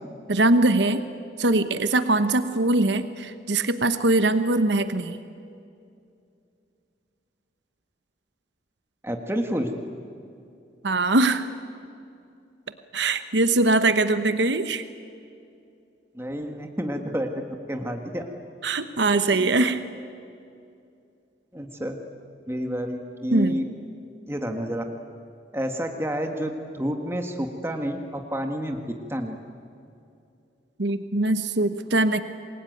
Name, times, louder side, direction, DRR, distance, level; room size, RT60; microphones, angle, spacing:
voice 1, 0.3-1.0 1.4-5.2 10.8-11.5 12.9-14.8 18.6-19.8 23.3-23.6 30.8-32.2, right 2 dB, 70° right, 11 dB, 1.1 m, -22 dB
voice 2, 9.0-9.7 16.1-17.3 17.7-18.3 19.1-19.5 21.5-22.0 22.5-23.6 24.3-24.8 25.5-28.8 29.1-29.4, equal, 15° right, 4 dB, 1.5 m, -29 dB
27.0 x 21.5 x 9.3 m, 2.5 s
head